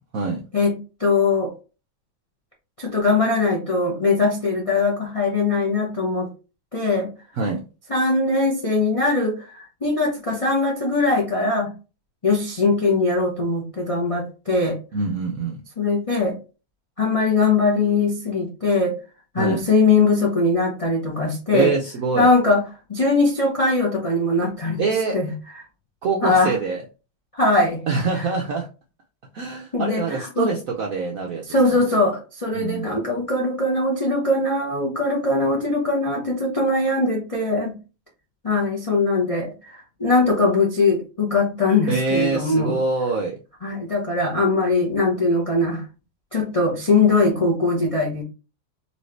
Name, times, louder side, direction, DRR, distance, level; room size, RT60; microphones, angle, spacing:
voice 1, 0.5-1.5 2.8-6.3 6.7-7.1 7.9-11.7 12.2-14.8 15.8-16.4 17.0-19.0 19.3-21.7 22.1-22.6 22.9-24.8 25.1-25.3 26.2-26.5 27.3-27.8 29.7-30.5 31.5-37.8 38.4-42.8 43.6-45.8 46.3-48.2, left 3 dB, 55° left, -2 dB, 0.3 m, -21 dB
voice 2, 14.9-15.6 19.4-19.6 21.5-22.3 24.8-25.2 26.0-26.8 27.9-28.7 29.3-31.8 32.5-32.9 41.9-43.4, right 4 dB, 75° right, 1 dB, 0.7 m, -24 dB
4.2 x 3.1 x 3.2 m, 0.32 s
omnidirectional pair, 2.2 m